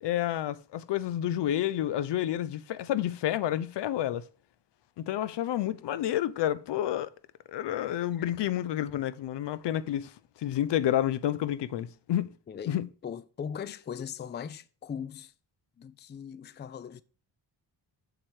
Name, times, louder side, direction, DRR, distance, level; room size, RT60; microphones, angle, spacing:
voice 1, 0.0-4.2 5.0-7.1 7.5-10.1 10.4-12.3 12.7-12.9, left 12 dB, 70° left, 0.6 m, -29 dB
voice 2, 12.5-15.3 15.8-17.0, left 7 dB, 25° left, 0.4 m, -39 dB
6.8 x 4.3 x 4.5 m
cardioid pair, 65°, 44 cm